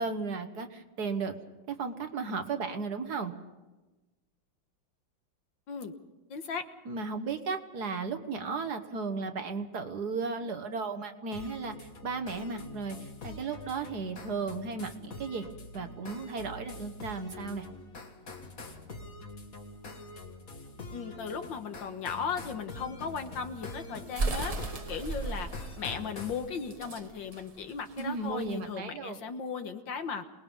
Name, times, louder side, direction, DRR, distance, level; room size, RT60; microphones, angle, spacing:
voice 1, 0.0-1.4 1.7-3.3 6.8-15.5 15.7-17.6 28.0-29.2, right 4 dB, 55° right, 8 dB, 1.6 m, -35 dB
voice 2, 6.3-6.6 20.9-24.5 24.9-25.5 25.8-30.2, left 6 dB, 70° left, 7 dB, 2.0 m, -36 dB
sound 1, 11.3-26.5, left 2 dB, 45° left, 2.1 m, -45 dB
sound 2, 23.1-28.7, right 3 dB, 30° right, 0.7 m, -36 dB
27.5 x 20.0 x 5.5 m, 1.1 s
omnidirectional pair, 2.2 m